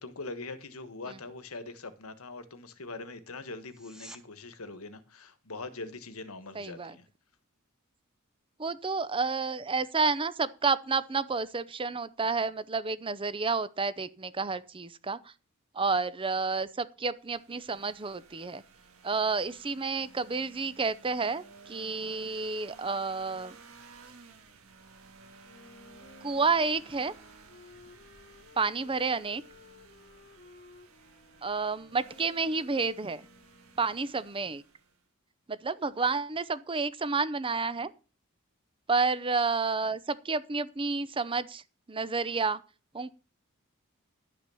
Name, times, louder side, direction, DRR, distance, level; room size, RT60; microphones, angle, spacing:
voice 1, 0.0-7.0, left 3 dB, 80° left, 1.4 m, -42 dB
sound 1, 3.6-4.2 15.6-15.7, right 1 dB, 5° right, 1.2 m, -49 dB
voice 2, 6.5-7.0 8.6-15.3 15.7-18.6 19.0-23.6 26.2-27.1 28.5-29.4 31.4-33.3 33.8-34.6 35.5-37.9 38.9-42.6 42.9-43.1, right 4 dB, 25° right, 0.6 m, -30 dB
sound 2, 17.2-35.0, right 4 dB, 75° right, 1.8 m, -55 dB
Wind instrument woodwind instrument, 25.4-34.0, left 4 dB, 50° left, 0.9 m, -56 dB
11.5 x 5.9 x 6.9 m
head